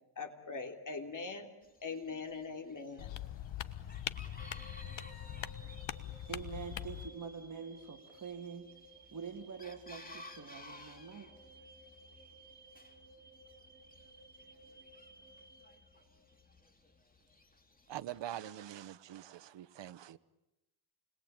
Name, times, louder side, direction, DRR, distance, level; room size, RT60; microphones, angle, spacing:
voice 1, 0.2-1.5 1.8-3.1, left 4 dB, 40° left, 5 dB, 3.5 m, -42 dB
Chicken rooster, 1.6-18.2, left 2 dB, 15° left, 2.9 m, -58 dB
sound 1, 3.0-7.1, left 11 dB, 65° left, 1.3 m, -42 dB
sound 2, 4.4-16.5, right 2 dB, 5° right, 5.9 m, -58 dB
voice 2, 6.3-8.7 9.1-11.4, right 6 dB, 40° right, 2 dB, 2.5 m, -45 dB
voice 3, 17.9-20.2, right 12 dB, 60° right, 15 dB, 1.1 m, -44 dB
29.0 x 21.5 x 8.9 m, 0.93 s
cardioid pair, 95°, 48 cm